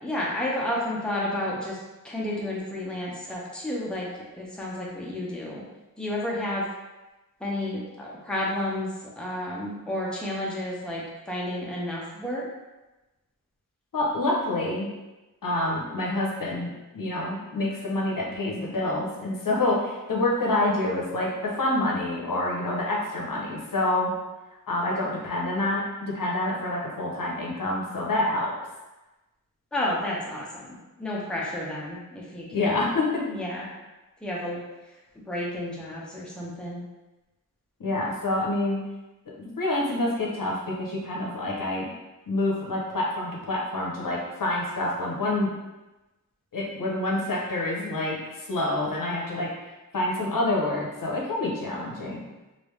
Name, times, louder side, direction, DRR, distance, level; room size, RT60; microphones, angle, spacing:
voice 1, 0.0-1.8 2.0-4.1 4.3-5.6 6.0-6.7 7.4-12.5 29.7-32.8 33.3-33.7 34.2-34.6 35.3-36.8, left 1 dB, 5° left, -5 dB, 0.7 m, -31 dB
voice 2, 13.9-14.9 15.4-24.1 24.7-28.5 32.5-33.3 37.8-38.9 39.3-41.9 42.3-45.5 46.5-49.5 49.9-52.2, left 2 dB, 70° left, -3 dB, 0.8 m, -27 dB
3.3 x 2.6 x 3.1 m, 1.1 s
wide cardioid pair, 100°, 34 cm